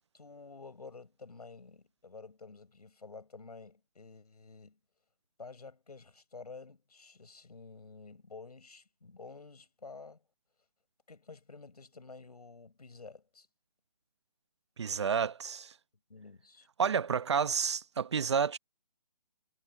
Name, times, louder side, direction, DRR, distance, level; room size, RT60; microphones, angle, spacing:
voice 1, 0.1-4.8 5.4-10.2 11.1-13.5 16.1-16.7, left 4 dB, 80° left, 6.2 m, -50 dB
voice 2, 14.8-15.7 16.8-18.6, right 6 dB, 45° right, 0.9 m, -30 dB
hypercardioid pair, 160°, 20 cm